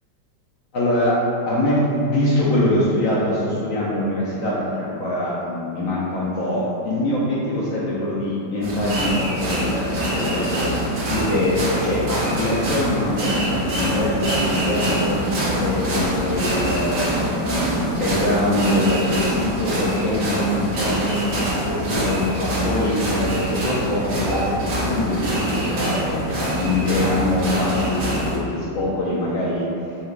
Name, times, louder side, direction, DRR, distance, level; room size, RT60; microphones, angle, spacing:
voice 1, 0.7-1.1 1.5-1.8 2.1-10.8 11.1-21.2 21.7-29.7, left 1 dB, 70° left, -7 dB, 0.8 m, -23 dB
sound 1, 8.6-28.4, equal, 70° right, 1.6 m, -24 dB
5.7 x 3.2 x 2.4 m, 2.8 s
omnidirectional pair, 2.0 m